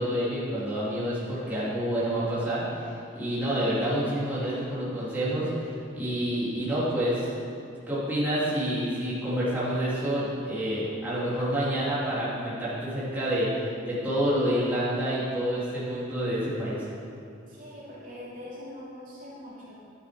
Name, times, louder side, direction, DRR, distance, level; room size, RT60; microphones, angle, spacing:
voice 1, 0.0-7.3 7.9-13.5 13.9-16.9, equal, 10° right, -10 dB, 2.9 m, -28 dB
voice 2, 17.5-19.8, left 1 dB, 45° right, -8 dB, 2.7 m, -43 dB
11.5 x 9.4 x 5.1 m, 2.5 s
head